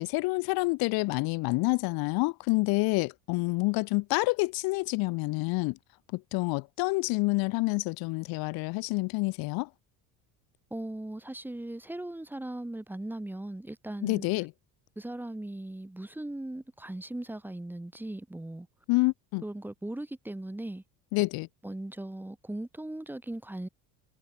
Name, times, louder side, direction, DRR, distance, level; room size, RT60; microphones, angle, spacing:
voice 1, 0.0-5.8 6.1-9.7 14.0-14.5 18.9-19.4 21.1-21.5, left 25 dB, 75° left, 1.9 m, -28 dB
voice 2, 10.7-14.3 15.0-18.7 19.4-20.8 21.6-23.7, right 1 dB, 5° right, 2.0 m, -38 dB
cardioid pair, 140°, 37 cm